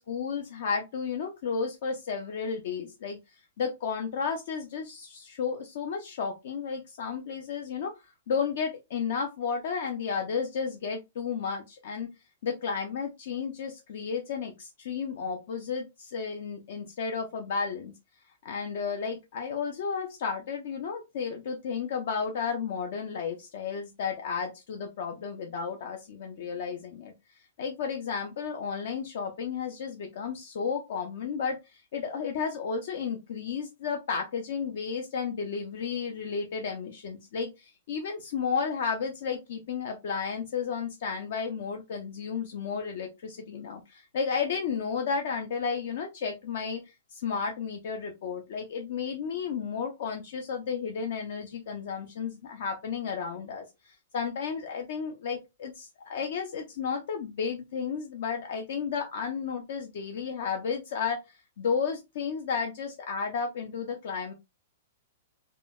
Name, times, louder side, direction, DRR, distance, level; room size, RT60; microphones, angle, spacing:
voice 1, 0.0-3.2 3.6-12.1 12.4-17.9 18.4-27.1 27.6-64.3, left 6 dB, 55° left, 4 dB, 0.5 m, -33 dB
3.6 x 2.1 x 2.3 m, 0.24 s
hypercardioid pair, 170°, 0 cm